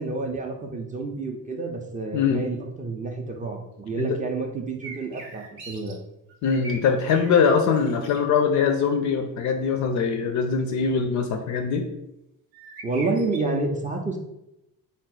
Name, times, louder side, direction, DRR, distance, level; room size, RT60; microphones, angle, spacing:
voice 1, 0.0-6.0 12.8-14.2, right 3 dB, 15° right, 2 dB, 0.4 m, -29 dB
voice 2, 2.1-2.4 4.0-4.2 6.4-11.9, left 6 dB, 40° left, 5 dB, 0.4 m, -22 dB
sound 1, 4.8-5.9 6.3-7.4 7.7-8.2 12.5-13.4, right 3 dB, 75° right, 0.8 m, -41 dB
3.9 x 2.1 x 3.7 m, 0.88 s
figure-of-eight pair, 45°, 49 cm